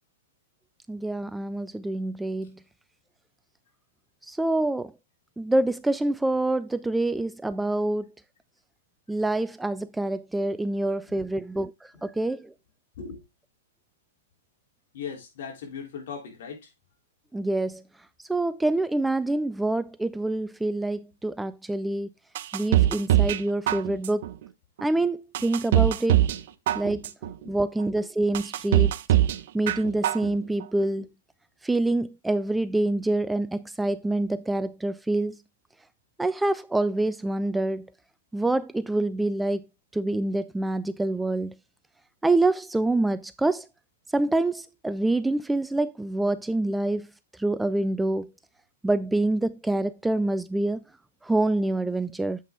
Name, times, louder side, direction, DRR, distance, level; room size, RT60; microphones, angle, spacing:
voice 1, 0.9-2.5 4.3-4.9 5.4-8.0 9.1-11.7 12.0-12.5 17.3-17.8 18.3-22.1 22.5-24.2 24.8-26.2 26.8-27.1 27.5-29.0 29.5-31.1 31.6-35.4 36.2-37.8 38.3-39.7 39.9-41.5 42.2-43.7 44.1-47.1 47.4-48.3 48.8-50.8 51.2-52.4, right 2 dB, 5° right, 0.3 m, -26 dB
voice 2, 14.9-16.7 26.2-26.4 27.4-27.6, left 6 dB, 60° left, 3.2 m, -39 dB
sound 1, 22.3-23.4 23.7-24.3 24.8-24.9 25.3-26.4 26.7-27.3 27.8-27.9 28.3-29.4 29.7-30.3 30.6-30.7, right 13 dB, 60° right, 0.6 m, -22 dB
7.8 x 5.5 x 3.6 m
hypercardioid pair, 130°, 0 cm